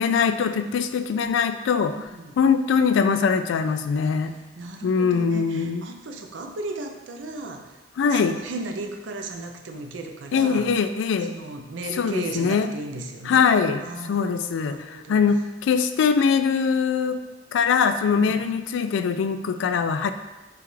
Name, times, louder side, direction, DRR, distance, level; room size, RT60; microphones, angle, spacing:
voice 1, 0.0-2.0 2.4-4.3 4.8-5.8 8.0-8.4 10.3-11.3 12.0-12.7 13.3-13.8 14.1-17.2 17.5-20.1, left 6 dB, 80° left, 10 dB, 0.3 m, -22 dB
voice 2, 2.0-2.4 4.0-7.8 8.1-10.7 11.2-15.2 18.1-18.4, right 2 dB, 85° right, 4 dB, 0.5 m, -36 dB
6.8 x 2.4 x 3.1 m, 1.1 s
head